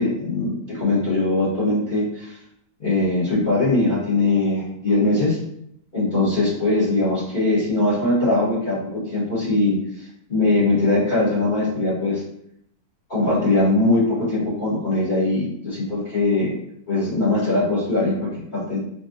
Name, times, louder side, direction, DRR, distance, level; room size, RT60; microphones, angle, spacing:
voice 1, 0.0-2.4 2.8-5.4 5.9-12.2 13.1-16.6 16.9-18.8, left 2 dB, 35° left, -9 dB, 1.3 m, -21 dB
5.2 x 2.4 x 2.6 m, 0.73 s
omnidirectional pair, 1.5 m